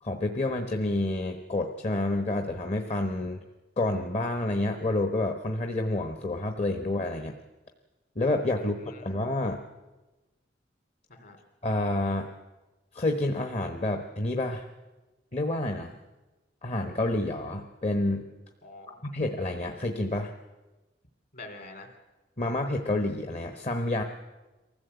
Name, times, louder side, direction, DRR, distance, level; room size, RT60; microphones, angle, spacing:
voice 1, 0.0-3.4 3.8-7.3 8.2-9.6 11.6-12.3 12.9-14.7 15.3-16.0 16.6-18.3 19.0-20.3 22.4-24.0, left 2 dB, 35° left, 5 dB, 1.1 m, -29 dB
voice 2, 18.6-19.0 21.3-21.9, left 2 dB, 55° left, 5 dB, 3.5 m, -45 dB
23.5 x 15.5 x 8.1 m, 1.2 s
head